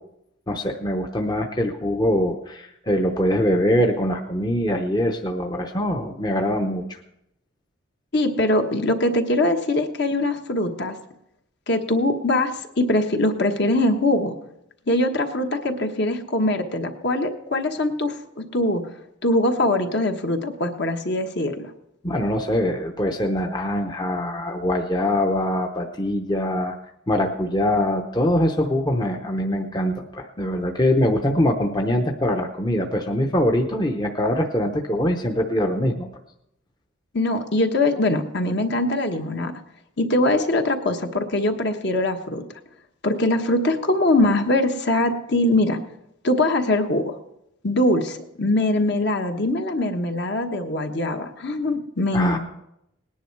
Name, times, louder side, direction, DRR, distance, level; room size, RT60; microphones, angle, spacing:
voice 1, 0.5-7.0 22.0-26.8 27.1-36.1 52.1-52.4, left 1 dB, 20° left, 3 dB, 0.8 m, -23 dB
voice 2, 8.1-11.0 11.7-14.4 14.9-18.8 19.2-21.7 37.1-39.5 40.0-42.4 43.0-45.8 46.2-47.2 47.6-52.4, left 1 dB, 55° left, 5 dB, 1.3 m, -22 dB
19.0 x 10.0 x 4.6 m, 0.81 s
head